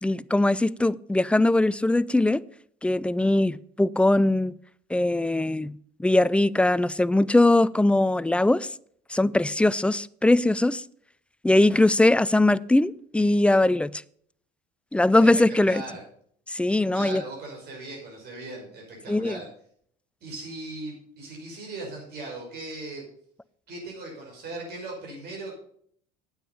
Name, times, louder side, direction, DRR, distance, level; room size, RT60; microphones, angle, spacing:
voice 1, 0.0-2.4 2.8-4.5 4.9-5.7 6.0-8.7 9.1-10.8 11.4-13.9 14.9-15.8 16.5-17.2 19.1-19.4, left 2 dB, 5° left, 0.3 m, -21 dB
voice 2, 15.2-16.0 16.9-19.5 20.2-23.0 23.7-25.5, right 2 dB, 50° right, 5.7 m, -38 dB
9.2 x 8.8 x 5.3 m
hypercardioid pair, 75°, 21 cm